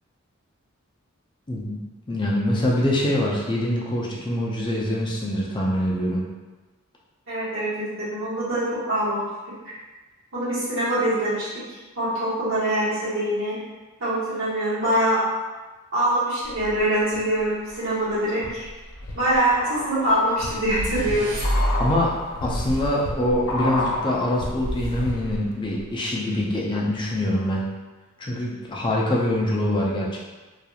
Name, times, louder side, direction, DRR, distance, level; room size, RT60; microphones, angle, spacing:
voice 1, 1.5-1.8 2.1-6.2 21.8-22.1 22.4-27.6 28.2-30.2, left 1 dB, 20° left, -3 dB, 0.4 m, -24 dB
voice 2, 7.3-9.3 9.6-9.7 10.3-13.5 14.0-15.2 15.9-18.7 19.1-21.3, right 1 dB, 60° right, -10 dB, 1.2 m, -24 dB
sound 1, 16.5-17.2 17.7-25.5 25.8-25.9, left 1 dB, 85° left, 0.4 m, -31 dB
sound 2, 20.5-22.3, equal, 40° right, 0.5 m, -27 dB
2.9 x 2.4 x 2.3 m, 1.2 s
head